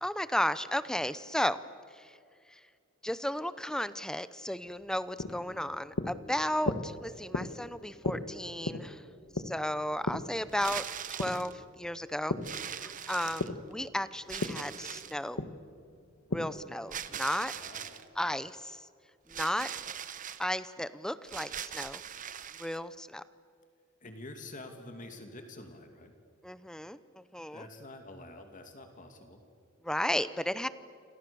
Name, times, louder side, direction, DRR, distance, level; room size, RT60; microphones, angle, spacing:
voice 1, 0.0-1.6 1.9-2.2 2.5-2.6 3.0-9.0 9.3-10.8 11.1-12.4 12.6-15.5 16.3-17.5 18.2-18.9 19.3-19.7 20.4-22.0 22.6-23.2 26.4-27.7 29.8-30.7, left 1 dB, 5° left, 14 dB, 0.7 m, -34 dB
sound 1, 4.6-12.6 12.9-16.7, left 2 dB, 75° left, 1.5 m, -37 dB
voice 2, 5.3-5.8 13.2-13.5 17.5-18.0 24.0-26.1 27.5-29.4, left 2 dB, 40° left, 5 dB, 2.6 m, -48 dB
sound 2, 10.5-11.5 12.4-13.7 14.3-15.2 16.9-18.0 19.3-20.4 21.3-22.8, right 9 dB, 40° right, 0.9 m, -41 dB
28.5 x 27.0 x 7.0 m, 2.2 s
head